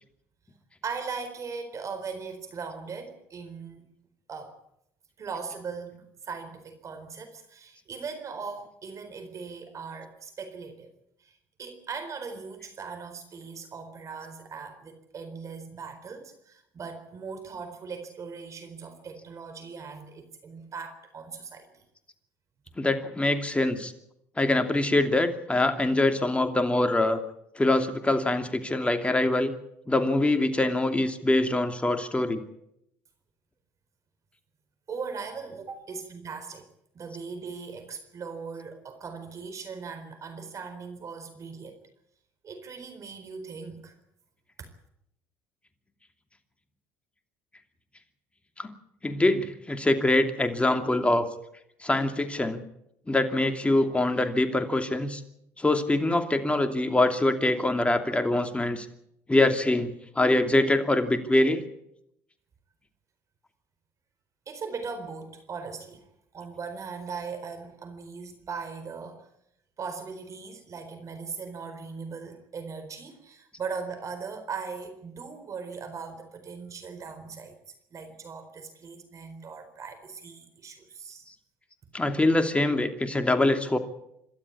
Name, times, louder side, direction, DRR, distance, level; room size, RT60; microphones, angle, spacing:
voice 1, 0.8-3.9 4.3-4.6 5.2-10.9 11.2-21.8 34.9-36.7 36.9-41.8 42.4-43.9 44.6-44.7 64.5-66.1 66.3-69.3 69.8-77.6 77.9-81.3, right 5 dB, 45° right, 8 dB, 4.2 m, -39 dB
voice 2, 22.8-23.9 24.4-27.2 27.6-29.5 29.9-32.4 48.6-48.7 49.0-51.3 51.8-52.6 53.1-55.2 55.6-58.9 59.3-61.6 81.9-83.8, left 2 dB, 15° left, 7 dB, 2.8 m, -24 dB
27.0 x 13.0 x 8.5 m, 0.78 s
hypercardioid pair, 65°, 8 cm